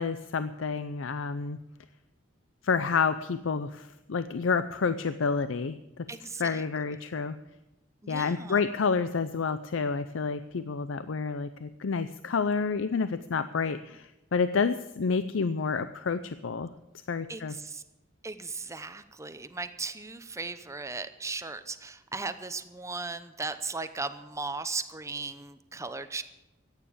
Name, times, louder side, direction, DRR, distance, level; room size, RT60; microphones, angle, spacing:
voice 1, 0.0-1.6 2.6-6.1 6.4-7.4 8.1-16.7 17.1-17.5, left 5 dB, 70° left, 12 dB, 0.5 m, -29 dB
voice 2, 6.1-6.6 8.0-8.6 17.3-17.8 18.2-26.2, right 3 dB, 15° right, 11 dB, 0.8 m, -37 dB
14.5 x 9.2 x 8.6 m, 0.96 s
head